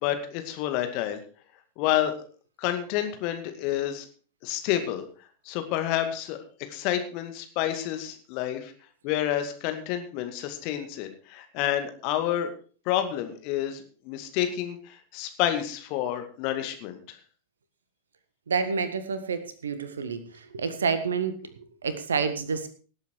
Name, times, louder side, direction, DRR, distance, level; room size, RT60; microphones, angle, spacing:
voice 1, 0.0-1.2 1.8-2.2 2.6-4.1 4.4-5.0 5.5-6.4 6.7-8.7 9.0-12.5 12.9-17.2, left 12 dB, 45° left, 8 dB, 2.2 m, -29 dB
voice 2, 18.5-22.7, right 5 dB, 70° right, 11 dB, 1.7 m, -29 dB
18.5 x 8.2 x 4.7 m, 0.40 s
figure-of-eight pair, 90°, 0 cm